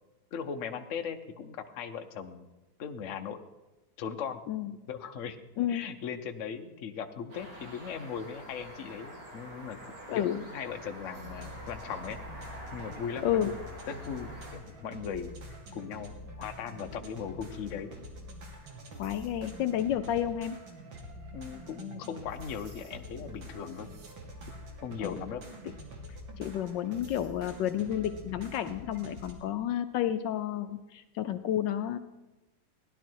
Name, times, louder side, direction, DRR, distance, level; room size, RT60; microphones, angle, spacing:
voice 1, 0.3-2.5 2.8-3.4 4.0-4.4 4.9-5.4 5.7-9.8 10.1-12.2 12.7-13.6 13.9-15.3 15.7-18.0 21.3-23.9 24.5-24.6 24.8-25.4, left 7 dB, 55° left, 6 dB, 0.9 m, -38 dB
sound 1, 7.3-14.5, equal, 65° right, 3.0 m, -46 dB
voice 2, 10.1-10.4 13.2-13.5 19.0-20.6 25.0-25.2 26.4-32.0, left 10 dB, 75° left, 10 dB, 1.2 m, -31 dB
sound 2, 11.1-29.3, equal, 80° right, 2.5 m, -46 dB
17.0 x 11.0 x 4.6 m, 1.0 s
omnidirectional pair, 2.1 m